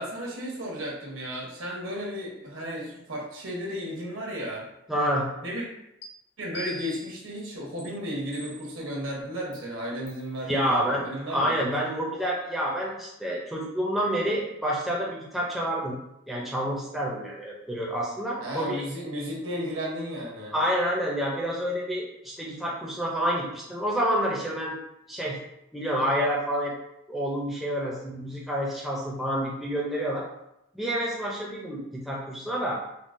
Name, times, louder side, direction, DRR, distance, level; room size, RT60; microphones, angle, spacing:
voice 1, 0.0-4.6 5.4-5.7 6.4-11.7 18.4-20.5, equal, 85° right, -3 dB, 1.0 m, -34 dB
voice 2, 4.9-5.3 10.4-11.0 11.3-16.0 16.3-18.8 20.5-24.7 25.1-25.4 25.7-26.7 27.1-30.3 30.7-32.8, equal, ahead, -4 dB, 0.4 m, -28 dB
sound 1, 6.0-6.1 6.5-7.2 7.8-7.9 8.3-8.8 9.5-9.6 10.1-10.3, left 2 dB, 50° left, 0.8 m, -42 dB
3.7 x 2.1 x 2.5 m, 0.83 s
head